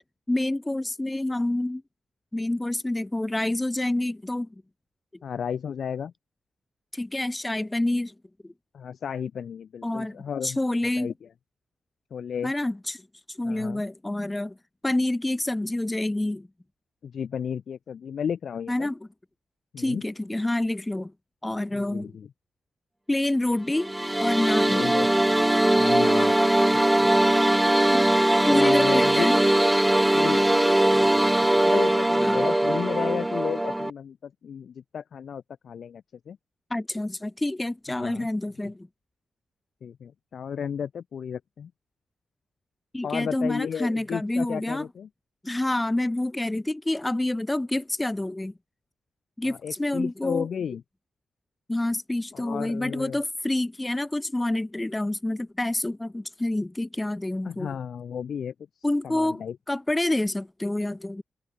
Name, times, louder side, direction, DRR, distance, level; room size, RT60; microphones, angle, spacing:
voice 1, 0.3-1.8 2.3-4.5 6.9-8.1 8.4-8.5 9.8-10.2 10.4-11.1 12.4-13.0 13.3-14.5 14.8-16.5 18.7-19.0 19.8-21.1 21.4-22.1 23.1-23.9 24.2-24.8 27.9-28.1 28.5-29.4 32.2-32.5 36.7-38.9 42.9-44.9 45.4-48.5 49.4-50.5 51.7-57.7 58.8-59.4 59.7-61.2, left 1 dB, 15° left, 1.0 m, -27 dB
voice 2, 5.2-6.1 8.7-10.6 11.0-11.1 12.1-12.5 13.4-13.8 17.0-18.9 19.7-20.0 21.7-22.3 24.7-25.3 25.8-26.4 26.7-27.1 28.5-29.3 30.1-30.4 30.9-36.4 37.9-38.3 39.8-41.7 43.0-45.1 49.4-50.8 52.3-53.2 57.4-59.6, left 7 dB, 70° left, 6.1 m, -33 dB
sound 1, 23.7-33.9, right 1 dB, 10° right, 1.1 m, -21 dB
cardioid pair, 55°, 0 cm